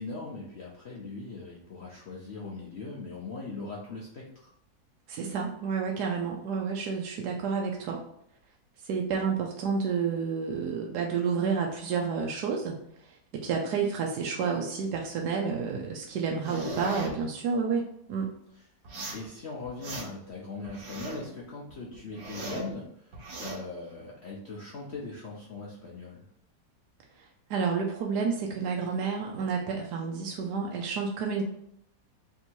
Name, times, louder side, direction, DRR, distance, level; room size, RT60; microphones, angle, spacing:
voice 1, 0.0-4.5 13.5-13.6 18.5-18.6 19.1-26.3, left 3 dB, 60° left, -4 dB, 0.7 m, -40 dB
voice 2, 5.1-8.0 8.8-12.7 13.3-18.3 27.5-31.4, right 5 dB, 75° right, 0 dB, 1.1 m, -30 dB
sound 1, 16.4-17.1 18.8-19.3 19.6-20.3 20.6-21.3 21.7-22.7 23.1-23.6, right 2 dB, 55° right, 1.3 m, -38 dB
3.5 x 2.7 x 4.4 m, 0.72 s
omnidirectional pair, 1.8 m